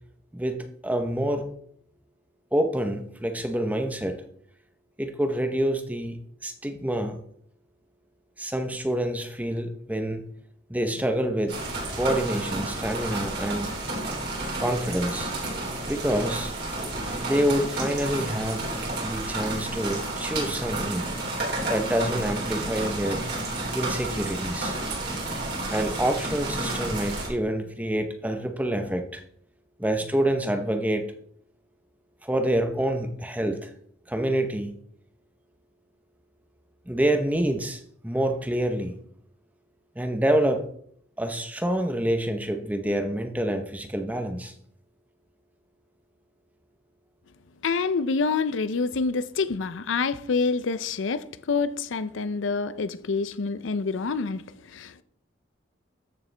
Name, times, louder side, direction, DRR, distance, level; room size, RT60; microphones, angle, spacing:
voice 1, 0.3-1.5 2.5-4.2 5.0-7.2 8.4-10.2 10.7-11.6 11.9-13.7 14.6-15.3 15.9-16.5 17.2-18.6 19.0-21.1 21.7-23.2 23.7-24.7 25.7-29.2 29.8-31.1 32.2-33.7 34.1-34.7 36.9-39.0 40.0-40.7 41.2-44.5, right 1 dB, 10° right, 0.8 m, -27 dB
sound 1, 11.5-27.3, right 2 dB, 55° right, 3.3 m, -31 dB
voice 2, 47.6-55.0, left 4 dB, 75° left, 0.5 m, -27 dB
14.0 x 6.7 x 3.3 m
head